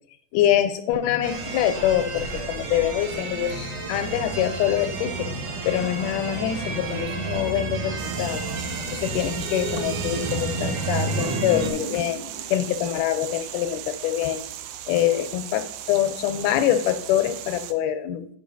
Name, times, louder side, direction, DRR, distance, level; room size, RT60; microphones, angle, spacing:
voice 1, 0.3-5.3 5.6-8.4 8.9-12.2 12.5-14.4 14.9-18.3, left 11 dB, 80° left, 11 dB, 2.0 m, -25 dB
sound 1, 1.2-11.7, right 3 dB, 60° right, 2.0 m, -31 dB
sound 2, 4.8-14.3, right 1 dB, 45° right, 1.8 m, -40 dB
sound 3, 8.0-17.7, right 11 dB, 80° right, 2.0 m, -37 dB
13.5 x 5.3 x 2.7 m, 0.64 s
omnidirectional pair, 3.9 m